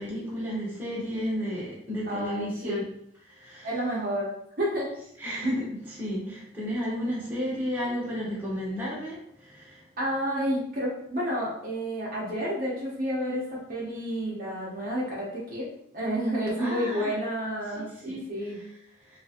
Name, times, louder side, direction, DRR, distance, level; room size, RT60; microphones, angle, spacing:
voice 1, 0.0-2.8 3.4-3.7 5.2-9.2 9.6-9.7 16.6-17.1 17.7-18.2, equal, 10° right, -8 dB, 0.9 m, -32 dB
voice 2, 2.1-2.8 3.6-4.3 4.6-4.9 10.0-15.7 15.9-18.6, equal, 45° right, -5 dB, 0.8 m, -30 dB
2.9 x 2.4 x 2.7 m, 0.73 s
head